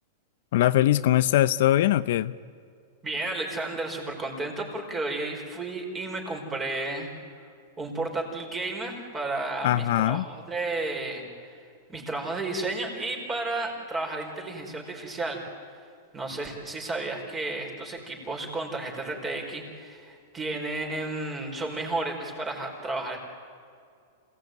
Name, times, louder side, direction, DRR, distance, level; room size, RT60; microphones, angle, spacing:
voice 1, 0.5-2.3 9.6-10.3, left 13 dB, 60° left, 15 dB, 0.6 m, -21 dB
voice 2, 3.0-7.1 7.8-11.6 11.9-15.4 16.1-23.2, right 2 dB, 15° right, 2 dB, 4.7 m, -32 dB
26.5 x 18.0 x 9.3 m, 2.3 s
supercardioid pair, 150°, 0 cm